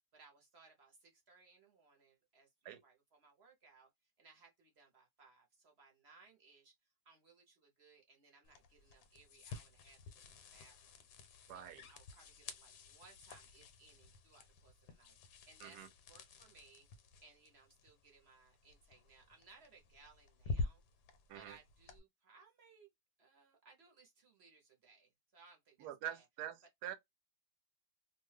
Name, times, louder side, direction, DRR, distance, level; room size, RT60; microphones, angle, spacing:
voice 1, 0.1-3.9 4.2-6.7 7.0-11.0 11.4-15.2 15.5-16.9 17.2-20.8 21.3-22.9 23.2-26.2, right 4 dB, 50° right, 0.8 m, -64 dB
sound 1, 8.4-22.0, left 3 dB, 75° left, 1.2 m, -49 dB
voice 2, 11.5-11.9 15.6-15.9 21.3-21.6 25.8-26.9, right 10 dB, 75° right, 1.1 m, -45 dB
2.7 x 2.2 x 3.1 m
omnidirectional pair, 1.8 m